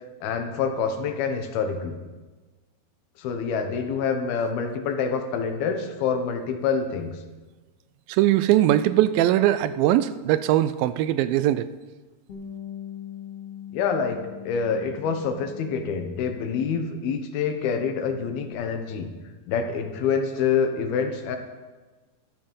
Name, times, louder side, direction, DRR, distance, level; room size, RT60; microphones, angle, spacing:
voice 1, 0.2-2.0 3.2-7.2 13.7-19.1 19.5-21.4, left 6 dB, 85° left, 6 dB, 3.1 m, -26 dB
voice 2, 8.1-11.7, right 13 dB, 80° right, 14 dB, 2.2 m, -20 dB
Bass guitar, 12.3-17.0 17.3-18.5, left 9 dB, 45° left, 2.7 m, -42 dB
13.0 x 13.0 x 5.3 m, 1.3 s
omnidirectional pair, 4.3 m